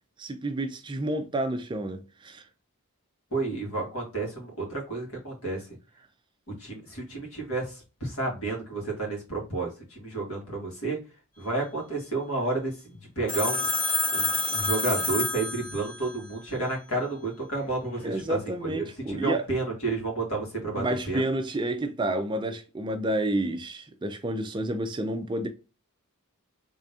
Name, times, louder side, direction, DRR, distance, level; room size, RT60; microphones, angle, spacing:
voice 1, 0.2-2.4 18.0-19.5 20.8-25.5, right 1 dB, 20° right, 0.4 m, -30 dB
voice 2, 3.3-5.7 6.5-11.0 11.4-13.7 14.1-21.2, right 3 dB, 70° left, 2.0 m, -31 dB
Telephone, 13.3-16.1, left 2 dB, 25° left, 1.5 m, -28 dB
3.6 x 3.4 x 2.7 m
head